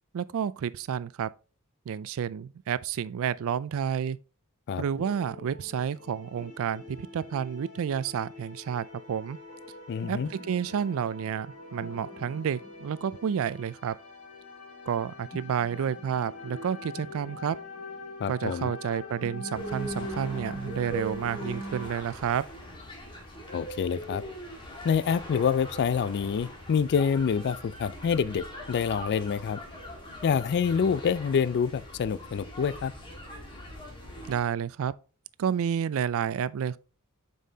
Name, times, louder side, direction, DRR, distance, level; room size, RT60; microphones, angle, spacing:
voice 1, 0.1-1.3 1.9-4.2 4.8-9.4 10.1-14.0 14.9-17.6 18.3-22.4 34.3-34.9 35.4-36.8, right 8 dB, 65° right, 0.3 m, -30 dB
sound 1, 5.0-21.9, left 1 dB, 80° left, 1.8 m, -43 dB
voice 2, 9.9-10.3 18.2-18.7 23.5-24.2 24.8-29.6 30.2-32.9, left 6 dB, 50° left, 0.3 m, -27 dB
sound 2, 19.5-34.4, equal, 25° left, 1.7 m, -42 dB
7.4 x 5.4 x 2.7 m
head